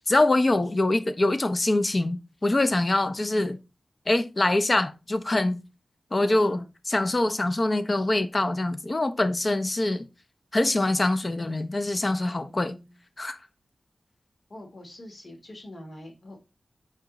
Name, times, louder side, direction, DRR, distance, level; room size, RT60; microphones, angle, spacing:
voice 1, 0.1-3.6 4.1-5.6 6.1-10.1 10.5-12.8 13.2-13.4, left 2 dB, 35° left, 0.5 m, -24 dB
voice 2, 6.2-6.7 12.4-12.9 14.5-16.5, left 1 dB, 50° left, 1.3 m, -45 dB
4.5 x 2.9 x 3.6 m
wide cardioid pair, 115°, 0 cm